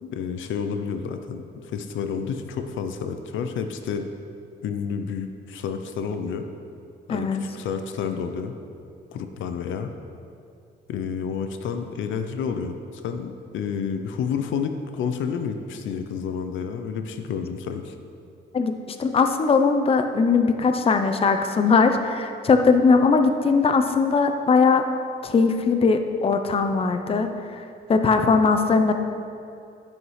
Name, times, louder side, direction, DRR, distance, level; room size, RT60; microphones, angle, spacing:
voice 1, 0.0-4.1 4.6-6.5 7.1-8.6 9.1-9.9 10.9-17.9, left 6 dB, 75° left, 7 dB, 0.5 m, -30 dB
voice 2, 7.1-7.4 18.5-18.7 19.0-24.9 25.2-27.6 27.9-28.9, left 4 dB, 30° left, 7 dB, 0.5 m, -20 dB
11.0 x 5.5 x 3.2 m, 2.5 s
cardioid pair, 90°, 20 cm